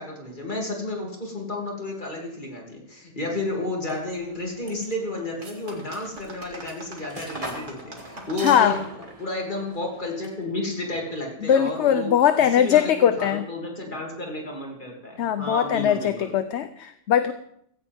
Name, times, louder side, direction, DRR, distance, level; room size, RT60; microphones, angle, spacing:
voice 1, 0.0-8.8 9.2-12.1 12.4-16.3, left 2 dB, 40° left, -1 dB, 3.1 m, -32 dB
sound 1, 3.8-10.6, right 1 dB, 30° right, 2.4 m, -43 dB
sound 2, 5.4-9.0, right 3 dB, 85° right, 2.6 m, -41 dB
voice 2, 8.4-8.8 11.4-13.4 15.2-17.3, left 9 dB, 70° left, 10 dB, 1.0 m, -20 dB
16.0 x 15.0 x 3.6 m, 0.69 s
omnidirectional pair, 1.3 m